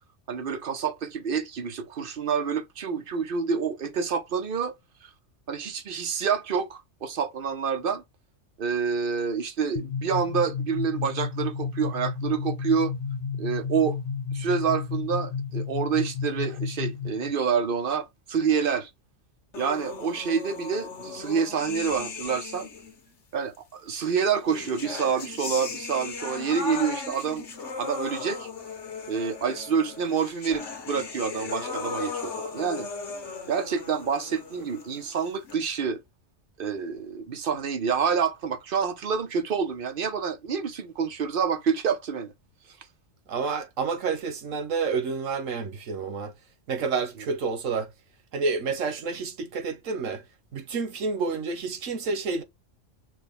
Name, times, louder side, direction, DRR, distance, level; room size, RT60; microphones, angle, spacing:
voice 1, 0.3-4.8 5.0-5.1 5.5-8.0 8.6-13.0 13.4-14.0 14.3-18.9 19.5-22.7 23.3-27.5 27.8-28.5 29.1-32.9 33.5-36.0 36.6-42.3, right 6 dB, 50° right, 0.8 m, -27 dB
sound 1, 9.8-17.3, left 5 dB, 45° left, 0.6 m, -32 dB
sound 2, 19.5-23.0 24.0-35.5, left 4 dB, 65° left, 1.5 m, -37 dB
voice 2, 43.3-46.3 46.7-47.9 48.3-50.2 50.5-52.4, right 4 dB, 85° right, 1.3 m, -29 dB
6.1 x 2.2 x 3.6 m
omnidirectional pair, 1.3 m